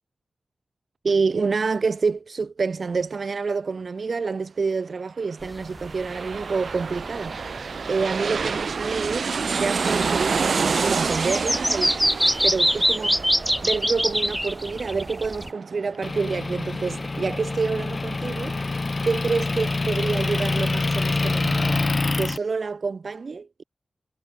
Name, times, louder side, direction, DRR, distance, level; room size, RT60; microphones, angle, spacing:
voice 1, 1.0-12.0 12.4-13.2 13.6-18.5 19.0-21.9 22.2-23.6, right 4 dB, 65° right, 4.2 m, -27 dB
sound 1, 5.4-15.5, equal, ahead, 3.4 m, -26 dB
sound 2, 5.5-16.8 17.2-17.3, right 5 dB, 85° right, 1.4 m, -29 dB
Motor vehicle (road) / Engine, 16.0-22.4, left 3 dB, 40° left, 2.6 m, -26 dB
wide cardioid pair, 85°, 0 cm